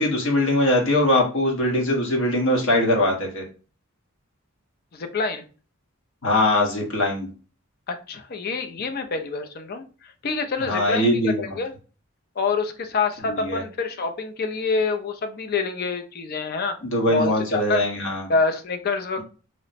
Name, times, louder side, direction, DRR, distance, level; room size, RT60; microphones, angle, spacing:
voice 1, 0.0-3.4 6.2-7.3 10.7-11.4 13.2-13.6 16.8-18.2, left 1 dB, 70° left, 0 dB, 1.1 m, -21 dB
voice 2, 4.9-5.4 7.9-11.7 12.4-16.8 17.1-17.8 18.3-19.2, left 4 dB, 45° left, 7 dB, 0.4 m, -26 dB
3.0 x 2.0 x 4.0 m, 0.37 s
head